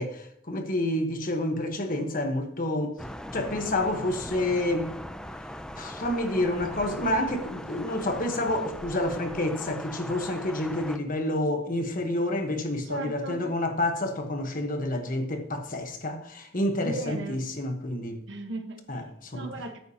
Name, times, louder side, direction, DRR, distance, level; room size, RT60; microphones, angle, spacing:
voice 1, 0.0-3.0 3.3-4.9 5.8-18.2 18.9-19.5, left 1 dB, 40° left, 1.2 m, -29 dB
Thunder, 3.0-11.0, equal, 5° left, 0.4 m, -40 dB
voice 2, 12.8-13.4 16.8-17.5 18.3-19.0 19.3-19.8, right 1 dB, 60° right, 1.3 m, -36 dB
13.5 x 9.2 x 2.9 m
head